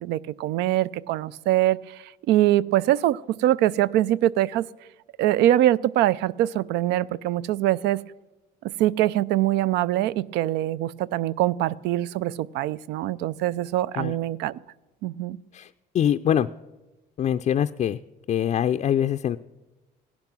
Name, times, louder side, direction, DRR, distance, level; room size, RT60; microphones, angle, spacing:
voice 1, 0.0-1.8 2.3-4.7 5.2-8.0 8.8-14.6 15.0-15.4, right 14 dB, 85° right, 20 dB, 0.4 m, -23 dB
voice 2, 15.5-16.5 17.2-18.0 18.3-19.4, left 10 dB, 40° left, 9 dB, 0.4 m, -24 dB
16.0 x 10.5 x 6.1 m, 1.1 s
cardioid pair, 110°, 17 cm